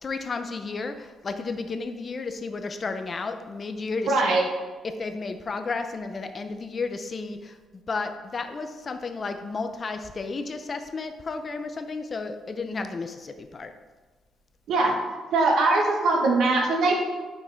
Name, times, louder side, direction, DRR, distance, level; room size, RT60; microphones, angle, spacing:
voice 1, 0.0-4.4 4.8-7.5 7.9-13.7, left 4 dB, 40° left, 8 dB, 0.5 m, -32 dB
voice 2, 4.1-4.4 14.7-14.9 15.3-17.0, right 3 dB, 70° right, 1 dB, 1.2 m, -21 dB
6.0 x 5.4 x 3.4 m, 1.3 s
cardioid pair, 90°, 0 cm